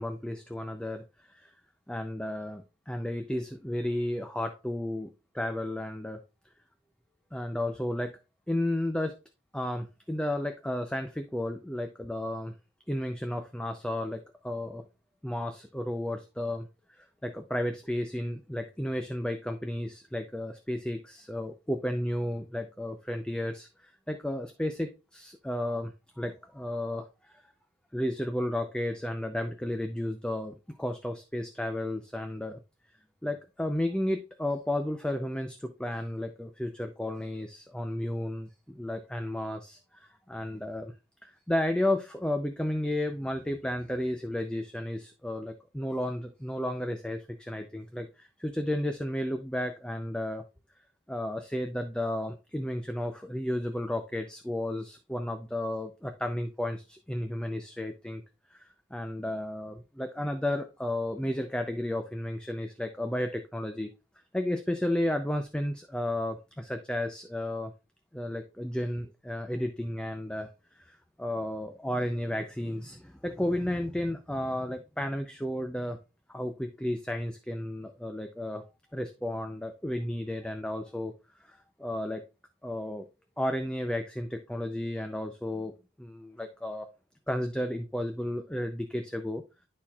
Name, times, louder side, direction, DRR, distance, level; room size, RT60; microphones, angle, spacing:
voice 1, 0.0-1.5 1.9-6.2 7.3-8.2 8.5-9.1 9.5-12.5 12.9-14.8 15.2-16.7 17.0-27.4 27.9-32.6 33.2-40.9 41.2-50.4 51.1-58.2 58.5-63.9 64.3-67.7 68.1-76.0 76.3-78.6 78.9-81.1 81.4-82.2 82.6-83.1 83.4-85.7 86.0-86.9 87.3-89.4, left 1 dB, 5° left, 6 dB, 0.4 m, -33 dB
11.5 x 4.3 x 2.3 m, 0.28 s
head